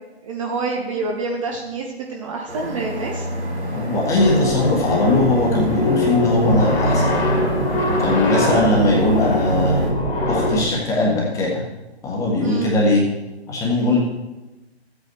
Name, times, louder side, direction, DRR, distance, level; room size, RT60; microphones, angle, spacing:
voice 1, 0.2-3.3 8.3-8.6 12.4-12.7, right 3 dB, 30° right, 0 dB, 0.9 m, -27 dB
sound 1, 2.5-9.9, right 1 dB, 90° right, 3.5 m, -28 dB
voice 2, 3.7-7.0 8.0-9.8 10.3-11.6 12.0-13.0 13.5-14.0, left 2 dB, 10° left, -3 dB, 1.5 m, -20 dB
sound 2, 4.2-10.6, left 1 dB, 50° left, 2.2 m, -21 dB
14.0 x 8.4 x 3.1 m, 1.1 s
figure-of-eight pair, 130°, 33 cm